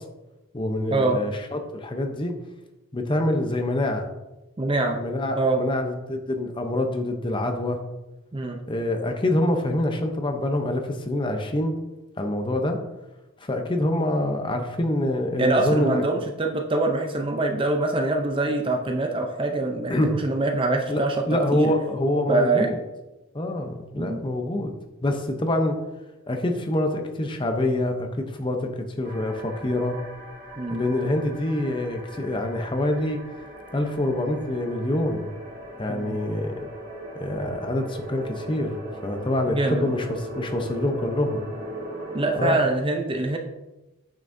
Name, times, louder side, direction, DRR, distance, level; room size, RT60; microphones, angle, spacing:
voice 1, 0.5-2.4 2.9-4.0 4.9-7.8 8.7-11.7 12.2-12.8 13.4-16.0 19.9-20.1 20.9-22.8 23.3-24.7 25.0-25.8 26.3-30.0 30.7-33.2 33.7-35.3 35.8-36.6 37.1-41.5 42.3-42.6, left 1 dB, 20° left, 5 dB, 0.7 m, -26 dB
voice 2, 4.6-5.0 5.3-5.6 8.3-8.6 15.4-21.2 21.5-21.7 22.3-22.7 24.0-24.2 30.6-30.8 35.9-36.2 39.5-39.9 42.1-43.4, right 2 dB, 25° right, 4 dB, 0.5 m, -24 dB
sound 1, 29.0-42.4, right 1 dB, 45° right, 1.6 m, -39 dB
8.9 x 6.0 x 2.7 m, 1.0 s
head